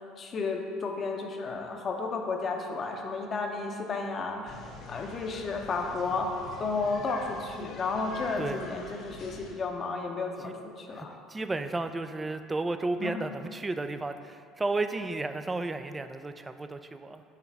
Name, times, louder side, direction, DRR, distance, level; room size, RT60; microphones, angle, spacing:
voice 1, 0.2-4.5 4.9-6.3 6.6-11.1 13.0-13.2, left 4 dB, 40° left, 3 dB, 0.8 m, -32 dB
sound 1, 4.5-9.5, left 3 dB, 60° left, 1.2 m, -45 dB
voice 2, 10.9-17.2, right 2 dB, 20° right, 9 dB, 0.4 m, -33 dB
5.9 x 3.9 x 4.6 m, 2.2 s
hypercardioid pair, 75°, 0 cm